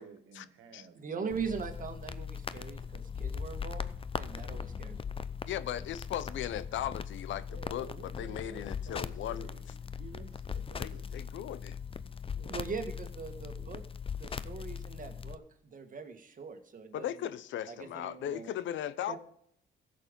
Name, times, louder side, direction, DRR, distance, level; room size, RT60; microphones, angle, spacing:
voice 1, 0.0-1.4 7.4-11.2 12.3-12.9 13.2-13.7, right 6 dB, 90° right, 1.7 m, -53 dB
voice 2, 0.9-3.9 4.2-5.0 12.5-13.8 14.1-17.1 17.7-18.5 19.1-19.2, right 5 dB, 40° right, 1.8 m, -41 dB
sound 1, 1.3-15.4, left 6 dB, 25° left, 0.6 m, -40 dB
voice 3, 5.5-9.5 10.8-11.8 16.9-19.2, left 11 dB, 75° left, 0.7 m, -37 dB
15.0 x 6.8 x 5.3 m
cardioid pair, 90°, 20 cm